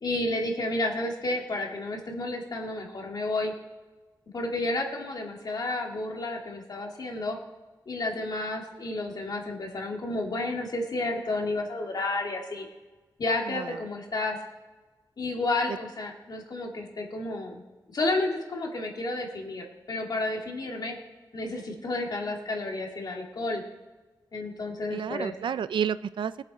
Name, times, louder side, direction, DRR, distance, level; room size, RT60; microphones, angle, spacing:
voice 1, 0.0-3.5 4.3-7.4 7.9-12.7 13.2-14.4 15.2-17.6 17.9-21.0 21.3-23.6 24.3-25.3, left 2 dB, 55° left, 0 dB, 2.2 m, -31 dB
voice 2, 13.5-13.8 15.7-15.8 24.9-26.4, right 8 dB, 80° right, 15 dB, 0.4 m, -31 dB
22.5 x 7.5 x 4.2 m, 1.3 s
wide cardioid pair, 135°, 8 cm